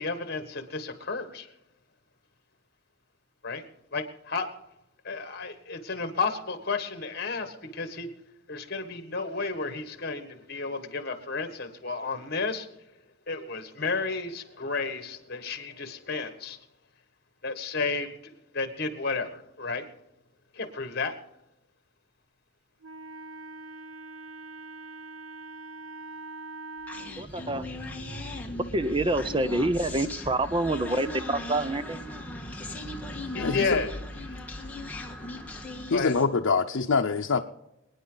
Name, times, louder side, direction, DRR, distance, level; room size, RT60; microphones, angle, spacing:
voice 1, 0.0-1.5 3.4-3.6 3.9-4.5 5.0-8.1 8.5-12.7 13.3-16.6 17.4-19.9 20.5-21.2 33.3-33.9 34.2-34.4 35.9-36.1, left 4 dB, 50° left, 8 dB, 1.6 m, -32 dB
Wind instrument woodwind instrument, 22.8-27.2, right 3 dB, 85° right, 0.7 m, -43 dB
Human voice, 26.9-36.3, left 1 dB, 10° left, 1.5 m, -38 dB
voice 2, 27.2-27.6 28.7-32.0, right 2 dB, 25° right, 13 dB, 0.6 m, -27 dB
voice 3, 33.4-33.8 35.9-37.4, left 4 dB, 85° left, 2 dB, 0.7 m, -25 dB
25.5 x 9.8 x 3.9 m, 0.86 s
head